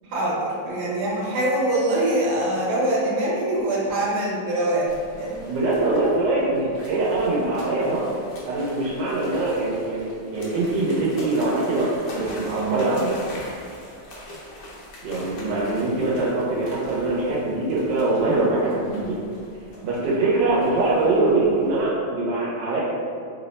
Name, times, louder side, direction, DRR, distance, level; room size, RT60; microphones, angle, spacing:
voice 1, 0.0-5.4, right 1 dB, 70° right, -5 dB, 1.3 m, -24 dB
sound 1, 4.9-21.9, left 1 dB, 65° left, 0.5 m, -42 dB
voice 2, 5.5-8.1 8.5-13.2 15.0-19.2 19.8-22.8, right 2 dB, 85° right, -6 dB, 1.4 m, -23 dB
3.3 x 2.1 x 4.0 m, 2.3 s
omnidirectional pair, 1.9 m